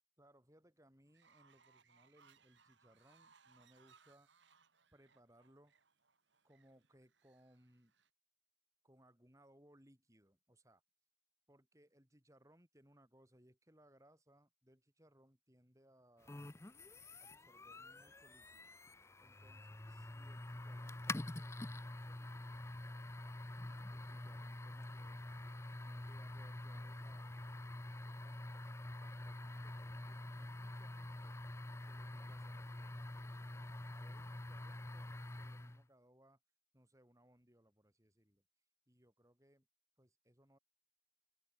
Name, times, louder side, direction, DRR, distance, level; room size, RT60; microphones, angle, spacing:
voice 1, 0.2-4.3 4.9-5.7 6.4-7.9 8.8-10.8 11.5-16.7 17.2-18.7 19.2-22.6 23.9-25.2 25.7-31.4 31.9-36.4 36.7-38.4 38.9-39.7 40.0-40.6, right 1 dB, 15° right, 7.3 m, -68 dB
Fowl, 1.1-8.1, right 5 dB, 70° right, 2.4 m, -70 dB
sound 1, 16.3-35.8, left 2 dB, 15° left, 0.5 m, -47 dB
open air
head